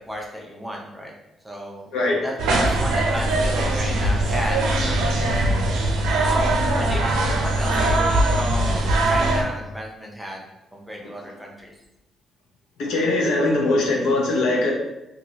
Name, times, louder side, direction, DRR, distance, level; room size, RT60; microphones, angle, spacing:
voice 1, 0.1-1.1 1.4-1.9 2.2-5.4 6.1-6.5 6.7-10.4 10.7-11.8, equal, 5° right, -2 dB, 0.6 m, -34 dB
sound 1, 2.4-9.4, right 1 dB, 85° right, 0.5 m, -21 dB
voice 2, 12.8-14.7, left 2 dB, 85° left, -1 dB, 0.8 m, -21 dB
2.7 x 2.6 x 3.0 m, 0.94 s
cardioid pair, 90°, 0 cm